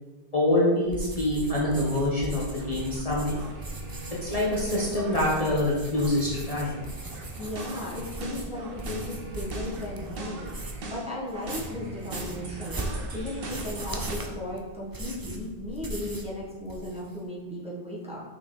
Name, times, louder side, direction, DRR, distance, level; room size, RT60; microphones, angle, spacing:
voice 1, 0.3-3.3 4.2-6.7, left 1 dB, 35° left, -6 dB, 1.2 m, -25 dB
sound 1, 0.9-10.9 11.3-16.3 16.6-17.2, right 1 dB, 25° right, 0.6 m, -38 dB
sound 2, 2.6-3.0 3.3-5.7 5.9-14.2, right 2 dB, 60° right, 1.1 m, -40 dB
voice 2, 7.4-10.4 10.9-18.2, left 1 dB, 5° right, -6 dB, 1.5 m, -36 dB
6.4 x 5.7 x 4.0 m, 1.2 s
omnidirectional pair, 1.1 m